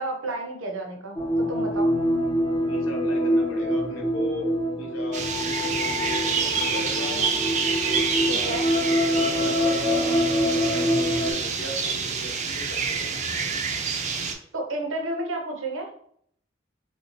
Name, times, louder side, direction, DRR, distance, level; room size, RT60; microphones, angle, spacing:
voice 1, 0.0-1.9 8.3-8.7 14.5-15.9, right 2 dB, 75° right, 2 dB, 0.8 m, -31 dB
sound 1, 1.2-11.3, equal, 25° left, 0.5 m, -25 dB
voice 2, 2.6-7.3 7.8-13.3, left 1 dB, 80° left, 1 dB, 0.9 m, -37 dB
sound 2, 5.1-14.3, right 5 dB, 35° right, 0.4 m, -28 dB
3.2 x 2.7 x 2.9 m, 0.65 s
head